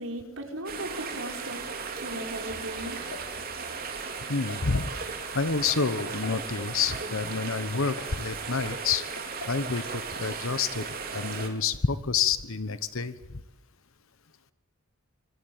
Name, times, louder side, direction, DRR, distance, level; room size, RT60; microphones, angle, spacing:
voice 1, 0.0-1.6 2.0-3.0, right 1 dB, 60° right, 4 dB, 5.3 m, -37 dB
sound 1, 0.7-11.5, right 5 dB, 40° right, 4.1 m, -36 dB
sound 2, 2.9-3.4 4.5-5.0 6.0-6.5 7.5-8.2 9.2-9.7 9.9-10.0 10.9-11.3, left 3 dB, 85° left, 3.9 m, -44 dB
voice 2, 4.3-4.9 5.3-9.0 9.5-10.9 11.1-13.1, left 5 dB, 65° left, 13 dB, 1.1 m, -28 dB
25.5 x 25.5 x 8.9 m, 1.1 s
head